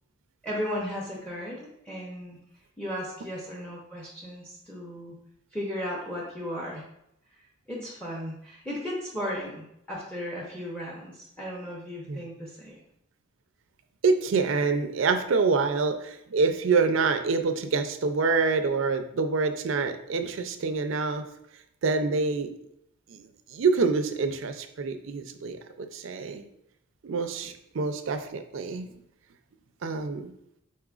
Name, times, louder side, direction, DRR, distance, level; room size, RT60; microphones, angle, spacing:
voice 1, 0.4-2.4 2.8-5.2 5.5-6.8 7.7-12.8, equal, 5° left, -4 dB, 0.7 m, -35 dB
voice 2, 14.0-21.2 21.8-22.5 23.1-26.5 27.0-28.9 29.8-30.3, right 4 dB, 65° right, 8 dB, 0.4 m, -26 dB
4.8 x 4.3 x 2.4 m, 0.78 s
head